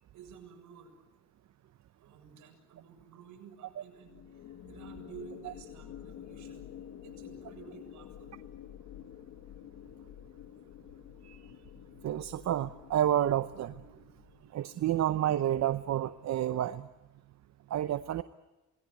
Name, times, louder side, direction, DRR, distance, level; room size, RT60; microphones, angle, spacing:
voice 1, 0.1-1.0 2.0-6.7 7.0-8.4, right 6 dB, 80° right, 3 dB, 7.3 m, -52 dB
sound 1, 4.0-14.5, left 10 dB, 75° left, 1.3 m, -49 dB
voice 2, 12.0-13.9 14.5-16.9 17.7-18.2, right 11 dB, 60° right, 12 dB, 0.8 m, -30 dB
27.5 x 19.5 x 9.4 m, 1.1 s
cardioid pair, 90°, 30 cm